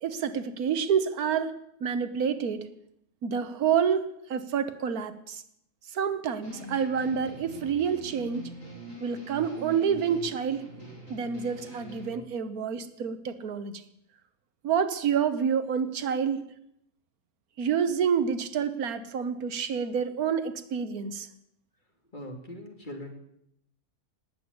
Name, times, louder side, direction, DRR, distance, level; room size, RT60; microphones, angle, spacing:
voice 1, 0.0-1.5 1.8-2.7 3.2-5.4 5.9-8.5 9.0-10.7 11.1-13.8 14.6-16.4 17.6-21.3, right 7 dB, 80° right, 12 dB, 1.5 m, -28 dB
sound 1, 6.4-12.1, right 1 dB, 60° left, 5.4 m, -44 dB
voice 2, 22.1-23.1, left 1 dB, 30° left, 3 dB, 2.6 m, -41 dB
19.0 x 8.7 x 8.2 m, 0.76 s
omnidirectional pair, 1.5 m